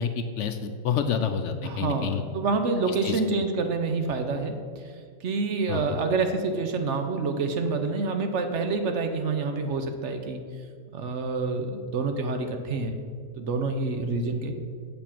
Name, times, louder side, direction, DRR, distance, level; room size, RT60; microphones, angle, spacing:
voice 1, 0.0-2.2 3.0-3.4 5.7-6.0, left 7 dB, 65° left, 8 dB, 0.8 m, -29 dB
voice 2, 1.6-4.5 5.2-10.4 10.9-12.9 13.4-14.6, right 3 dB, 60° right, 6 dB, 1.0 m, -27 dB
7.4 x 7.1 x 5.8 m, 2.1 s
omnidirectional pair, 1.5 m